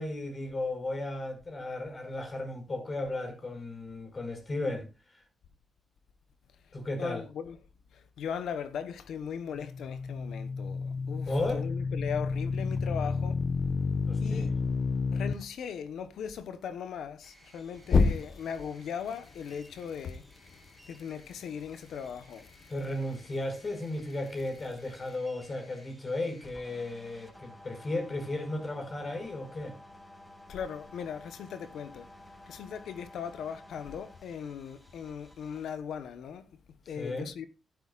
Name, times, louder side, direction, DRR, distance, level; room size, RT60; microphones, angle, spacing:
voice 1, 0.0-5.2 6.7-7.3 11.2-11.7 14.1-14.5 22.7-29.8 37.0-37.3, left 2 dB, 40° left, 5.7 m, -35 dB
voice 2, 7.0-7.6 7.9-13.4 14.2-14.5 15.1-20.3 20.9-22.5 30.5-32.1 32.5-37.5, left 7 dB, 80° left, 1.1 m, -39 dB
sound 1, 9.5-15.3 17.9-18.6, left 4 dB, 60° left, 1.3 m, -29 dB
sound 2, 17.2-35.7, left 1 dB, 10° left, 6.6 m, -55 dB
13.0 x 12.0 x 2.5 m
cardioid pair, 65°, 0 cm